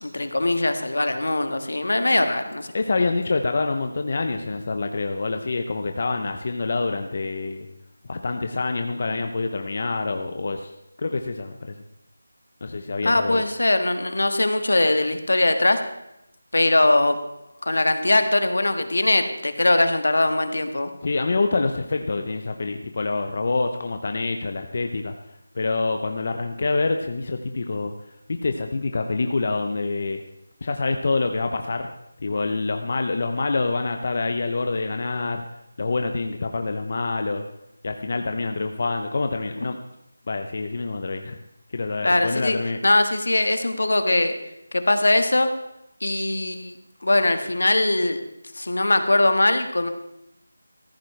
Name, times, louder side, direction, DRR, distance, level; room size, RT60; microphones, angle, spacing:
voice 1, 0.0-2.7 13.0-15.8 16.5-17.2 17.6-20.9 42.0-42.6 42.8-44.3 44.7-45.5 46.0-46.7 47.0-48.2 48.5-49.9, left 2 dB, 75° left, 7 dB, 1.5 m, -21 dB
voice 2, 2.7-7.7 8.1-10.7 11.0-11.8 12.6-13.4 21.0-25.2 25.5-27.9 28.4-30.2 30.6-31.9 32.2-35.4 35.8-37.5 37.8-39.8 40.3-41.4 41.7-42.8, left 3 dB, 35° left, 5 dB, 0.6 m, -26 dB
14.5 x 14.5 x 3.3 m, 0.84 s
figure-of-eight pair, 175°, 0 cm